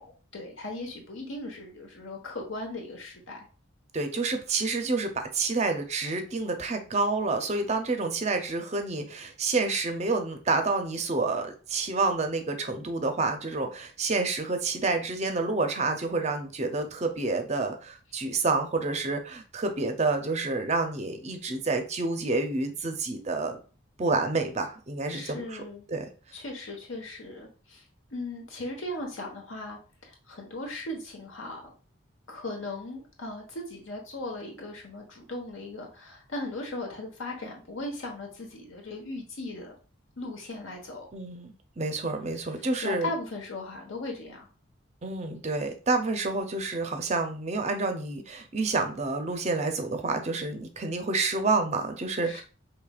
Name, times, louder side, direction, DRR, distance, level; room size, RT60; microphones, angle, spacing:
voice 1, 0.0-3.4 25.1-25.9 26.3-27.8 28.1-31.7 32.3-39.7 40.2-41.1 42.7-44.5 52.2-52.4, left 2 dB, 70° left, 2 dB, 1.1 m, -38 dB
voice 2, 3.9-23.6 24.0-25.6 25.9-26.1 41.1-43.1 45.0-52.4, right 3 dB, 30° right, 5 dB, 0.5 m, -29 dB
4.9 x 3.1 x 2.3 m, 0.36 s
head